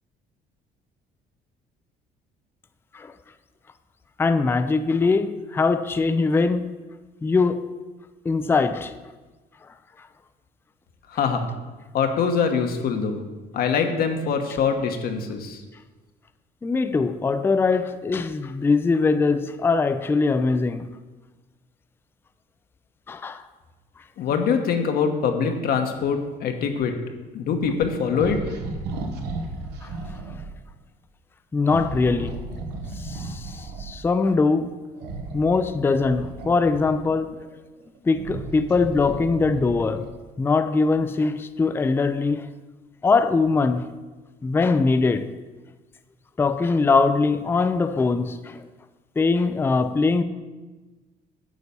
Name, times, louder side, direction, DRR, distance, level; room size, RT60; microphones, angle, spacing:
voice 1, 4.2-6.7 7.2-7.7 8.3-8.9 16.6-20.9 23.1-23.4 31.5-32.4 33.0-34.8 35.3-37.4 38.0-40.1 40.4-42.5 43.0-43.8 44.4-45.3 46.4-48.7 49.2-50.2, left 4 dB, 15° left, 0.4 m, -22 dB
voice 2, 11.1-11.5 11.9-13.2 13.5-15.6 24.2-26.9 27.3-28.4, left 6 dB, 65° left, 1.1 m, -23 dB
sound 1, 28.1-30.5 31.6-34.0 34.9-37.3 37.8-40.2, right 2 dB, 85° right, 1.1 m, -34 dB
9.3 x 4.1 x 6.8 m
cardioid pair, 110°, 17 cm